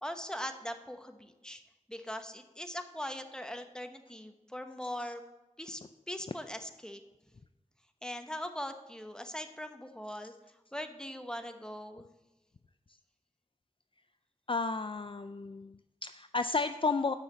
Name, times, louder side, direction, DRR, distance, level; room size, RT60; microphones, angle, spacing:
voice 1, 0.0-1.6 1.9-5.2 5.6-5.8 6.1-7.0 8.0-10.3 10.7-12.1, equal, 5° left, 7 dB, 0.9 m, -41 dB
voice 2, 14.5-17.2, left 4 dB, 40° left, 10 dB, 0.4 m, -32 dB
9.7 x 5.6 x 7.4 m, 1.0 s
wide cardioid pair, 50°, 13 cm